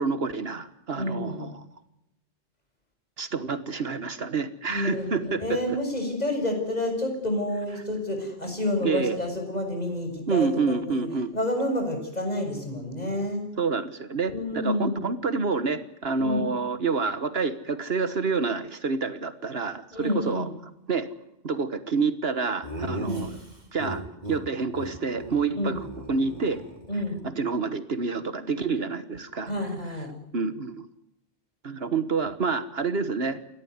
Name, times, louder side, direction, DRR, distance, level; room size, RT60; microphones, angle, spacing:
voice 1, 0.0-1.5 3.2-5.6 8.8-9.2 10.3-11.3 13.6-20.5 20.9-21.1 21.4-23.4 23.7-24.0 24.3-25.8 26.1-26.6 27.2-29.5 30.3-30.9 31.6-33.4, right 4 dB, 65° right, 12 dB, 1.6 m, -28 dB
voice 2, 1.0-1.5 4.7-11.1 11.3-13.4 14.3-15.1 16.2-16.5 19.9-20.5 23.0-23.3 25.5-25.8 26.9-27.2 29.5-30.1, left 1 dB, 40° left, 3 dB, 6.9 m, -29 dB
Laughter, 22.6-24.4 24.7-24.9 25.2-25.4 25.6-27.2, right 1 dB, 40° right, 5.4 m, -36 dB
30.0 x 13.0 x 9.5 m, 0.85 s
omnidirectional pair, 1.1 m